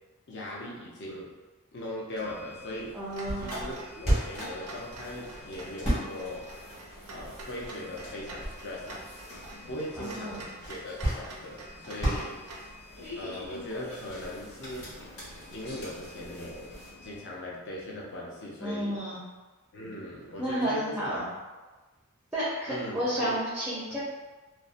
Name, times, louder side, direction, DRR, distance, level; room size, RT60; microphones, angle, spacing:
voice 1, 0.3-1.3 1.7-3.0 3.4-6.5 7.1-9.1 9.7-12.6 13.2-15.0 15.5-19.0 19.7-21.3 22.7-23.4 23.9-24.0, left 1 dB, 55° left, -4 dB, 0.6 m, -39 dB
sound 1, 2.2-17.2, left 2 dB, 85° left, 1.3 m, -46 dB
sound 2, 2.8-16.9, right 1 dB, 30° left, 1.1 m, -37 dB
voice 2, 2.9-3.6 10.0-10.4 18.6-19.2 20.4-21.2 22.3-24.0, right 1 dB, 5° right, -8 dB, 0.4 m, -31 dB
Clock, 3.1-12.7, right 2 dB, 90° right, 0.5 m, -46 dB
2.5 x 2.0 x 2.4 m, 1.2 s
head